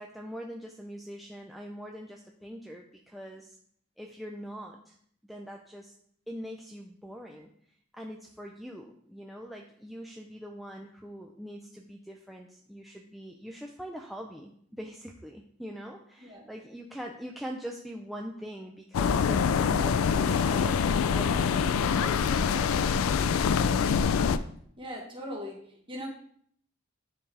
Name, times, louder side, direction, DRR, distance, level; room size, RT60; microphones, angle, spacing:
voice 1, 0.0-3.6 4.0-5.0 5.2-5.9 6.3-7.5 7.9-23.1 23.7-23.9, equal, ahead, 0 dB, 0.4 m, -43 dB
sound 1, 18.9-24.4, left 6 dB, 85° left, 0.4 m, -25 dB
voice 2, 24.8-26.1, equal, 25° right, -1 dB, 1.3 m, -40 dB
9.4 x 3.6 x 3.3 m, 0.65 s
head